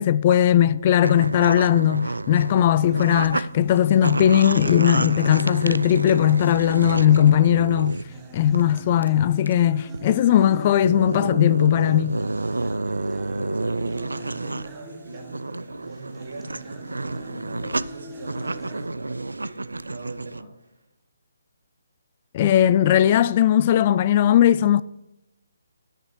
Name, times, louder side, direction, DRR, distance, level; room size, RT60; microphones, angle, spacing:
voice 1, 0.0-8.0 8.3-12.2 22.3-24.8, left 11 dB, 35° left, 0.3 m, -18 dB
sound 1, 1.0-3.4 3.8-8.1 8.5-8.8 9.0-9.1 9.5-9.6 9.9-10.0 10.6-14.7 15.1-20.4, right 2 dB, 85° right, 0.4 m, -29 dB
sound 2, 2.9-18.9, right 2 dB, 15° right, 0.9 m, -41 dB
voice 2, 13.2-20.9, right 2 dB, 70° right, 2.3 m, -41 dB
17.5 x 6.7 x 3.1 m
figure-of-eight pair, 150°, 0 cm